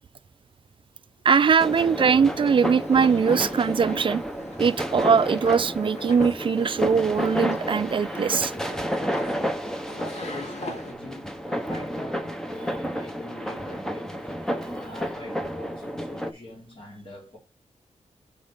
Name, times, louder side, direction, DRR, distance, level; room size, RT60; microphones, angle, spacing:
voice 1, 1.2-4.2 4.6-8.5, right 6 dB, 45° right, 0.4 m, -21 dB
sound 1, 1.6-16.3, equal, 5° left, 0.8 m, -31 dB
sound 2, 1.7-10.9, left 2 dB, 65° left, 1.7 m, -42 dB
voice 2, 9.8-14.4 14.8-17.4, left 1 dB, 45° left, 3.4 m, -42 dB
5.3 x 5.0 x 5.5 m
wide cardioid pair, 145°, 12 cm